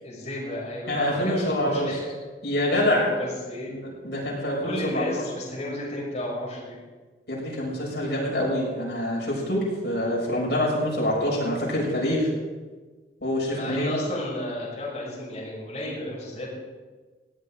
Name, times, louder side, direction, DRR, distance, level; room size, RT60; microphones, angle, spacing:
voice 1, 0.0-2.1 2.7-3.7 4.6-6.8 13.5-16.5, left 1 dB, 40° left, -6 dB, 6.3 m, -33 dB
voice 2, 0.9-2.0 2.4-3.1 3.7-5.2 7.3-12.3 13.2-13.9, left 1 dB, 75° left, -4 dB, 6.6 m, -26 dB
19.5 x 16.5 x 3.8 m, 1.3 s
head